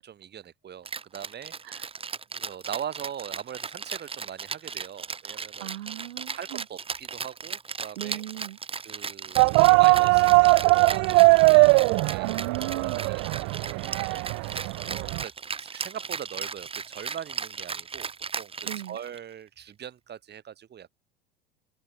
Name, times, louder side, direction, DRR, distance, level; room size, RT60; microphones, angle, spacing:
voice 1, 0.0-1.5 2.3-5.7 6.3-8.2 8.8-12.3 12.7-15.3 15.6-18.5 18.9-20.9, right 9 dB, 35° right, 3.2 m, -41 dB
Rattle (instrument), 0.8-19.3, right 5 dB, 20° right, 1.2 m, -36 dB
voice 2, 5.6-6.6 8.0-8.6 12.2-13.1 18.6-19.0, right 14 dB, 80° right, 6.5 m, -37 dB
sound 1, 9.4-15.2, right 30 dB, 55° right, 0.7 m, -20 dB
hypercardioid pair, 90°, 30 cm